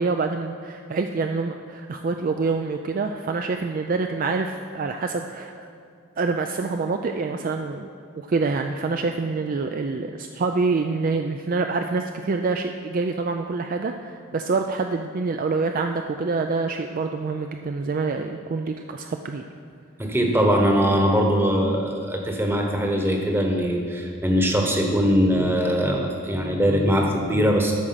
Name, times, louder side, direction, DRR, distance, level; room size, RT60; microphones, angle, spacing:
voice 1, 0.0-5.7 6.2-7.9 8.2-19.4, right 4 dB, 40° right, 5 dB, 0.3 m, -26 dB
voice 2, 20.0-27.7, equal, 10° right, 1 dB, 1.0 m, -21 dB
13.0 x 4.8 x 5.7 m, 2.4 s
head